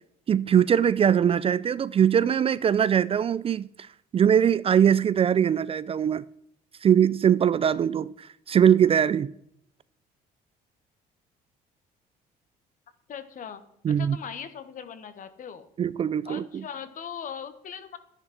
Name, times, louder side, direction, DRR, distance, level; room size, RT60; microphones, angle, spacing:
voice 1, 0.3-3.7 4.1-6.2 6.8-9.3 13.8-14.2 15.8-16.6, right 8 dB, 35° right, 0.4 m, -21 dB
voice 2, 13.1-13.6 14.0-15.7 16.2-18.0, left 7 dB, 50° left, 1.4 m, -39 dB
11.5 x 10.5 x 4.3 m
cardioid pair, 110°, 17 cm